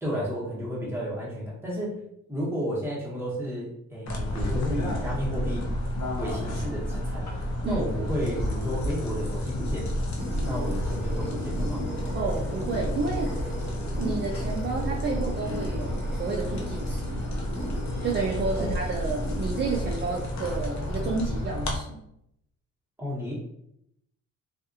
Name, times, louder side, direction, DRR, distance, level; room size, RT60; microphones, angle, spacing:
voice 1, 0.0-1.9 2.3-5.7 6.2-7.3 7.6-9.9 10.4-11.9 18.6-18.7 23.0-23.3, equal, 10° right, -6 dB, 1.2 m, -32 dB
sound 1, 4.1-21.8, left 1 dB, 65° left, 0.7 m, -31 dB
sound 2, 10.1-21.4, equal, 35° left, 1.5 m, -38 dB
voice 2, 12.1-13.3 14.0-17.2 18.0-22.0, right 4 dB, 35° right, -2 dB, 0.5 m, -31 dB
2.6 x 2.4 x 2.6 m, 0.76 s
cardioid pair, 90°, 30 cm